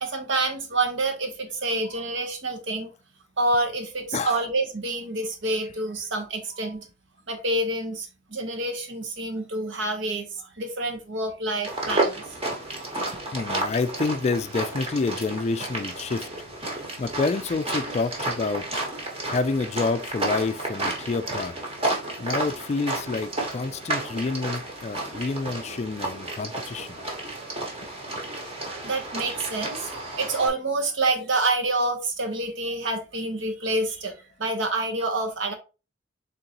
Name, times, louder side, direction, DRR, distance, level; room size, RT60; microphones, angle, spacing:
voice 1, 0.0-2.9 3.4-6.9 7.3-12.2 25.1-25.2 28.8-29.9 30.2-35.5, right 2 dB, 70° right, 1.0 m, -27 dB
sound 1, 11.6-30.5, right 2 dB, 30° right, 1.2 m, -31 dB
voice 2, 13.0-16.3 16.7-21.5 22.2-27.0, left 3 dB, 35° left, 0.3 m, -28 dB
3.9 x 3.7 x 2.8 m
head